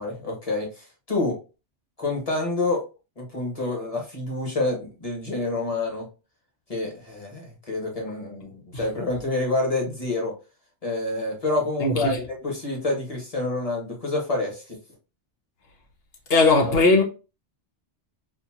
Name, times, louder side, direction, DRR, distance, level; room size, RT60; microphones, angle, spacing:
voice 1, 0.0-1.3 2.0-2.8 3.2-6.0 6.7-10.3 10.8-14.7, left 2 dB, 30° left, 1.5 m, -28 dB
voice 2, 11.8-12.2 16.3-17.0, left 3 dB, 55° left, 1.1 m, -18 dB
4.2 x 2.7 x 2.9 m
omnidirectional pair, 1.2 m